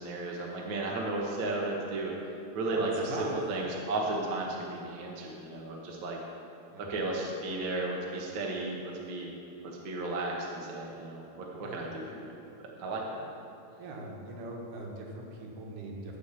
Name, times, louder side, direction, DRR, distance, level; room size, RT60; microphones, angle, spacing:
voice 1, 0.0-2.1 2.5-2.9 3.2-6.2 6.8-9.3 9.6-12.2 12.6-13.2, right 2 dB, 55° right, -2 dB, 1.3 m, -34 dB
voice 2, 2.7-3.4 6.7-6.9 11.6-11.8 13.8-16.2, right 2 dB, 85° right, -1 dB, 3.4 m, -41 dB
13.0 x 5.1 x 6.9 m, 2.7 s
omnidirectional pair, 4.4 m